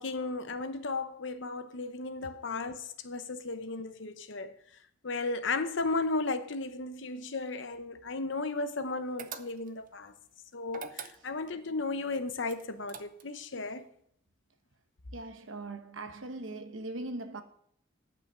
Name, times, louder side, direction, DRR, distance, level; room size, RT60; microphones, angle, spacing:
voice 1, 0.0-4.5 5.0-10.1 10.5-13.8, left 3 dB, 65° left, 0.9 m, -35 dB
sound 1, 9.2-9.9 10.7-11.6 12.5-13.4, right 7 dB, 45° right, 0.6 m, -44 dB
voice 2, 15.1-17.4, right 2 dB, 75° right, 1.0 m, -40 dB
9.7 x 5.9 x 6.6 m
head